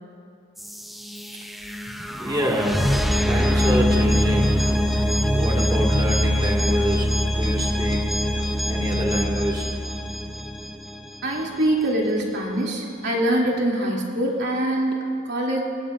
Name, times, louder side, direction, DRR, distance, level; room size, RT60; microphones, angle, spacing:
sound 1, 0.6-11.4, equal, ahead, 0.7 m, -23 dB
voice 1, 2.2-3.0 3.2-4.6 5.3-8.1 8.3-9.7, equal, 20° right, -2 dB, 2.3 m, -27 dB
voice 2, 11.2-15.6, right 1 dB, 55° right, -3 dB, 3.2 m, -24 dB
30.0 x 16.5 x 2.7 m, 2.3 s
head